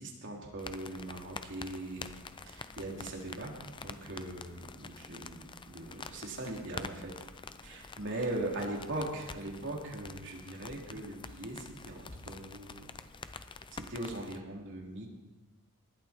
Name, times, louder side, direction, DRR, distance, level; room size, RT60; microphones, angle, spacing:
voice 1, 0.0-2.2 2.5-7.1 7.6-12.9 13.3-13.4 13.7-15.1, right 1 dB, 55° right, -1 dB, 3.2 m, -40 dB
sound 1, 0.6-14.4, left 4 dB, 20° left, 0.6 m, -47 dB
19.5 x 12.0 x 4.4 m, 1.1 s
head